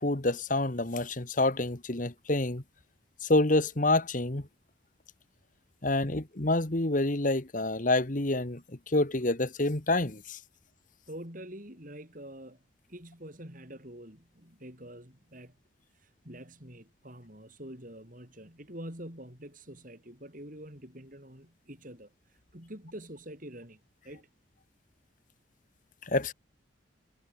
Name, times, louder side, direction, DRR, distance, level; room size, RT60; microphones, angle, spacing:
voice 1, 0.0-2.6 3.2-4.5 5.8-8.6 8.9-10.4 26.0-26.3, left 2 dB, 40° left, 1.5 m, -27 dB
voice 2, 11.1-12.6 12.9-15.6 15.9-24.3, right 1 dB, 45° right, 7.5 m, -46 dB
head